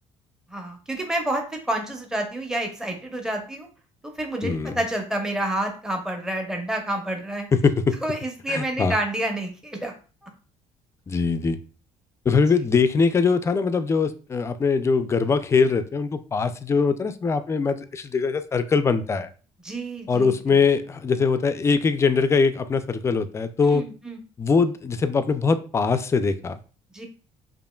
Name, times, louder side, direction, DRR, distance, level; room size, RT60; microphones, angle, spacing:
voice 1, 0.5-3.7 4.2-7.5 8.0-9.9 10.2-10.3 19.6-20.6 23.6-24.2 26.9-27.1, right 1 dB, 5° right, 3 dB, 0.7 m, -29 dB
voice 2, 4.4-4.8 7.5-8.0 8.5-8.9 11.1-11.6 12.3-19.3 20.1-23.9 24.4-26.6, left 5 dB, 25° left, 11 dB, 0.3 m, -22 dB
5.3 x 2.5 x 2.2 m, 0.37 s
cardioid pair, 120°, 12 cm